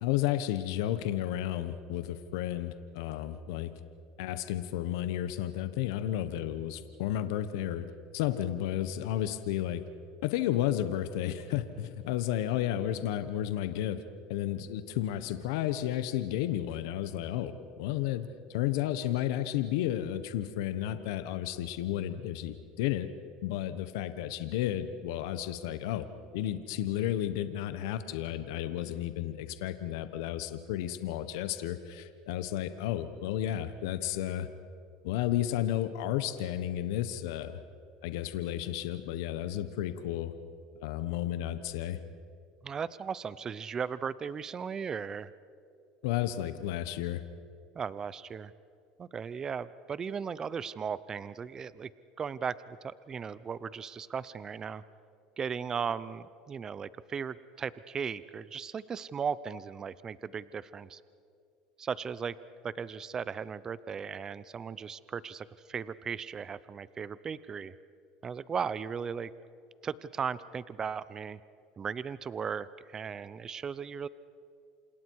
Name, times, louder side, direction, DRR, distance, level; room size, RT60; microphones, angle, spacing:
voice 1, 0.0-3.7 4.2-7.8 8.1-9.8 10.2-14.0 14.3-23.1 23.4-26.1 26.3-34.5 35.0-37.6 38.0-40.3 40.8-42.0 46.0-47.2, left 12 dB, 85° left, 11 dB, 1.1 m, -32 dB
voice 2, 42.6-45.3 47.7-48.5 49.0-51.9 52.2-54.8 55.4-61.0 61.8-62.3 62.6-67.7 68.2-69.3 69.8-71.4 71.8-74.1, right 6 dB, 30° right, 17 dB, 0.7 m, -37 dB
28.5 x 27.5 x 4.8 m, 2.4 s
supercardioid pair, 110°, 2 cm